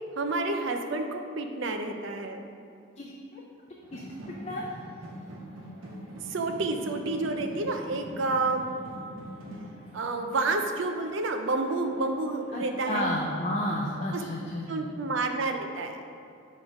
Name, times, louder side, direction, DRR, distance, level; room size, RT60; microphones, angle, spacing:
voice 1, 0.2-2.4 6.3-8.7 9.9-13.1 14.1-14.2 14.7-16.0, right 3 dB, 70° right, 5 dB, 0.5 m, -29 dB
voice 2, 3.0-3.4 3.9-4.0 4.4-4.6 12.5-14.9, left 1 dB, 30° left, -2 dB, 0.4 m, -31 dB
sound 1, 3.8-12.7, equal, 85° right, 1.2 m, -44 dB
6.2 x 3.1 x 4.9 m, 2.5 s
head